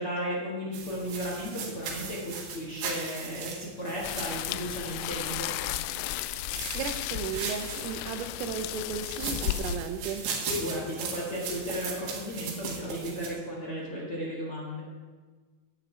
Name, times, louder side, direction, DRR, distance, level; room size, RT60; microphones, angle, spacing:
voice 1, 0.0-5.5 10.5-14.8, equal, 65° left, -5 dB, 1.4 m, -34 dB
sound 1, 0.7-5.5 6.3-8.3 8.9-13.3, right 5 dB, 70° right, 4.0 m, -38 dB
sound 2, 4.0-9.8, left 13 dB, 85° left, 3.1 m, -34 dB
voice 2, 6.8-10.3, right 6 dB, 85° right, 8 dB, 3.5 m, -35 dB
16.0 x 11.0 x 3.4 m, 1.4 s
omnidirectional pair, 5.9 m